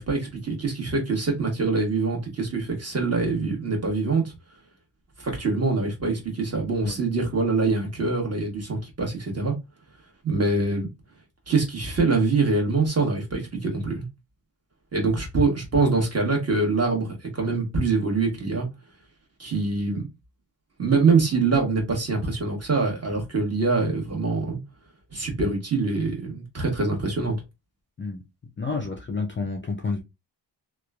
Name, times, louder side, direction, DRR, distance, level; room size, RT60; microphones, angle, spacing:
voice 1, 0.0-4.3 5.2-9.5 10.2-10.9 11.5-14.1 14.9-18.7 19.4-20.1 20.8-24.6 25.1-27.4, right 3 dB, 35° right, 1.1 m, -24 dB
voice 2, 28.6-30.0, left 4 dB, 30° left, 0.4 m, -29 dB
3.0 x 2.2 x 2.2 m
wide cardioid pair, 110°, 43 cm